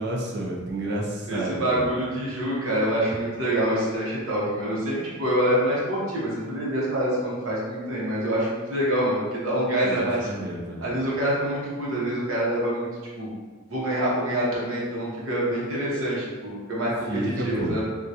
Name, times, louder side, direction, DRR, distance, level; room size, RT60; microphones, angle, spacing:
voice 1, 0.0-1.9 9.8-10.9 17.1-17.8, right 1 dB, 55° right, -2 dB, 0.6 m, -30 dB
voice 2, 1.3-10.3 10.8-12.9 13.2-13.3 13.7-17.8, right 1 dB, 75° right, -6 dB, 1.0 m, -26 dB
3.6 x 2.4 x 2.8 m, 1.4 s
head